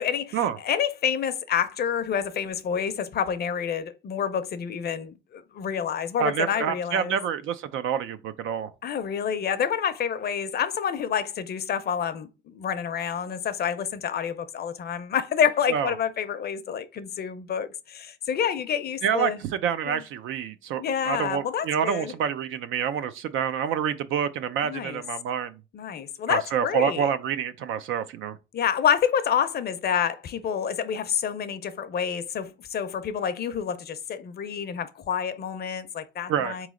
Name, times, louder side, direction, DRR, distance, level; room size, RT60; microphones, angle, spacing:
voice 1, 0.0-7.2 8.8-19.4 19.9-20.0 20.8-22.1 24.6-25.0 25.7-27.1 28.5-36.7, left 8 dB, 55° left, 0.6 m, -28 dB
voice 2, 6.2-8.7 15.7-15.9 19.0-25.6 26.3-28.4 36.3-36.6, right 8 dB, 80° right, 0.5 m, -27 dB
3.8 x 3.1 x 3.6 m
cardioid pair, 90°, 20 cm